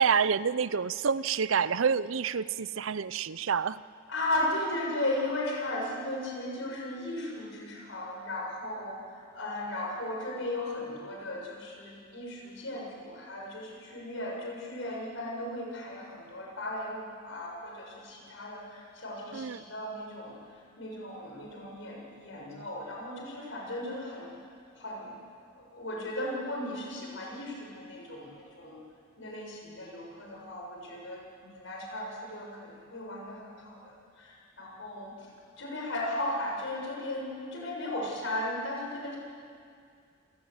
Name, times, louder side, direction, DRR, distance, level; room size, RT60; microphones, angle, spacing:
voice 1, 0.0-3.8 19.3-19.6, right 6 dB, 75° right, 17 dB, 0.6 m, -28 dB
voice 2, 4.1-9.0 9.3-20.3 20.8-24.3 24.8-25.1 25.7-28.8 29.2-35.1 35.6-39.2, left 1 dB, 65° left, -2 dB, 6.7 m, -36 dB
27.5 x 18.0 x 8.1 m, 2.3 s
head